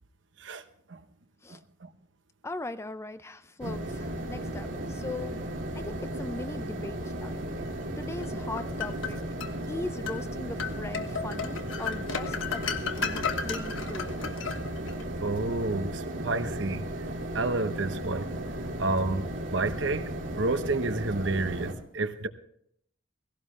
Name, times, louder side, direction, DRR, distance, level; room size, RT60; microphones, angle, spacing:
voice 1, 1.5-1.9 7.5-7.6 15.2-16.9 17.3-18.3 18.8-20.1 20.4-22.3, right 2 dB, 70° right, 10 dB, 1.0 m, -30 dB
voice 2, 2.4-5.4 5.7-7.5 8.0-9.2 9.7-12.6 13.0-14.2, left 2 dB, 15° left, 12 dB, 0.5 m, -39 dB
sound 1, 3.6-21.7, right 1 dB, 85° right, 2.3 m, -35 dB
sound 2, 8.2-9.5 10.1-10.2 10.6-15.0, left 6 dB, 85° left, 1.3 m, -34 dB
18.0 x 17.0 x 3.3 m, 0.70 s
head